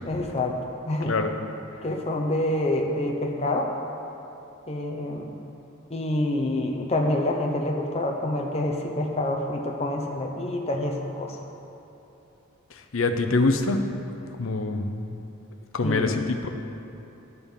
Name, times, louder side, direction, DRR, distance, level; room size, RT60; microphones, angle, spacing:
voice 1, 0.0-0.6 0.9-1.1 1.8-3.7 4.7-5.4 5.9-11.4 15.8-16.3, left 1 dB, 25° left, 1 dB, 0.7 m, -27 dB
voice 2, 12.9-13.8 14.4-15.1 15.7-16.5, left 3 dB, 60° left, 6 dB, 0.7 m, -24 dB
11.0 x 6.9 x 5.3 m, 3.0 s
head